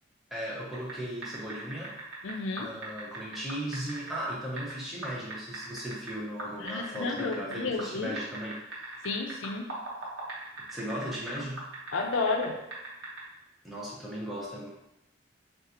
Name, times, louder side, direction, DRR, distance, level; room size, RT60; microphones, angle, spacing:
voice 1, 0.3-2.0 2.6-8.9 10.7-11.7 13.6-14.7, equal, ahead, -6 dB, 0.6 m, -37 dB
sound 1, 0.7-0.9 1.2-4.7 5.0-6.1 6.4-7.9 8.2-12.5 12.7-13.2, right 2 dB, 85° right, 1.0 m, -39 dB
voice 2, 2.2-2.7 6.6-8.1 9.0-9.7 11.9-12.6, left 3 dB, 90° left, 3 dB, 0.4 m, -31 dB
3.7 x 2.4 x 2.8 m, 0.88 s
head